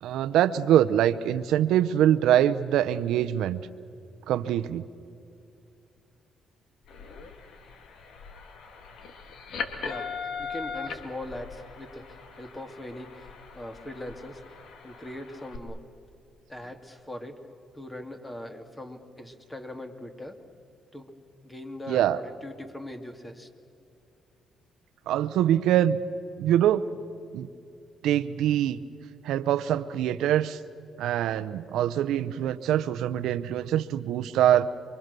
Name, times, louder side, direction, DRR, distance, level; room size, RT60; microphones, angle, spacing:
voice 1, 0.0-3.6 4.3-4.8 21.9-22.2 25.1-26.0 26.4-26.9 27.3-27.5 28.0-28.8 29.2-30.6 31.0-34.7, right 11 dB, 85° right, 12 dB, 0.7 m, -24 dB
sound 1, 6.8-15.6, left 5 dB, 70° left, 2.4 m, -40 dB
voice 2, 10.4-13.3 13.6-14.4 14.8-15.8 16.5-17.4 17.7-20.4 20.9-21.1 21.4-23.5, left 1 dB, 15° left, 6 dB, 2.5 m, -40 dB
28.5 x 23.5 x 6.8 m, 2.6 s
cardioid pair, 90°, 0 cm